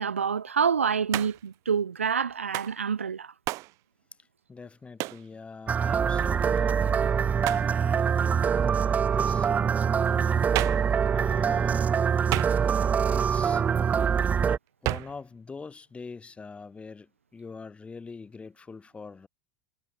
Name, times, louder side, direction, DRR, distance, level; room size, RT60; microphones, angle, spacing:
voice 1, 0.0-3.3, right 6 dB, 80° right, 0.7 m, -27 dB
Hands, 1.1-1.5 2.5-2.8 3.5-3.7 5.0-5.3 7.4-7.7 10.5-10.9 12.3-12.9 14.8-15.2, right 21 dB, 50° right, 4.0 m, -31 dB
voice 2, 4.5-9.5 10.0-10.5 11.1-11.9 13.1-13.6 14.8-19.3, left 4 dB, 15° left, 3.0 m, -44 dB
sound 1, 5.7-14.6, right 7 dB, 20° right, 0.4 m, -24 dB
figure-of-eight pair, 80°, 7 cm